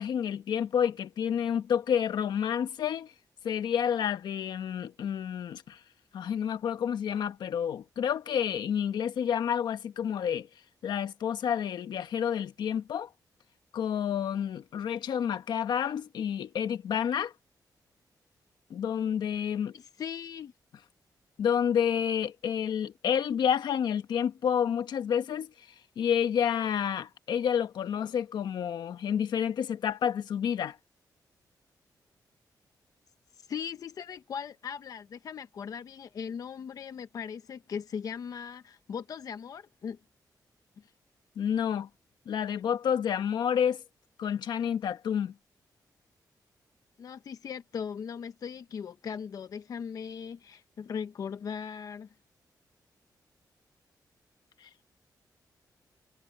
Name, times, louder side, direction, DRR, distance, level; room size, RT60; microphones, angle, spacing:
voice 1, 0.0-3.1 3.4-5.8 6.1-10.5 10.8-13.1 13.7-17.3 18.7-19.7 21.4-25.5 26.0-30.8 41.4-41.9 42.3-43.8 44.2-45.3 54.6-54.7, left 8 dB, 90° left, 1.4 m, -29 dB
voice 2, 19.7-20.5 33.4-40.0 40.8-40.9 47.0-52.1, left 7 dB, 55° left, 0.8 m, -39 dB
wide cardioid pair, 155°, 7 cm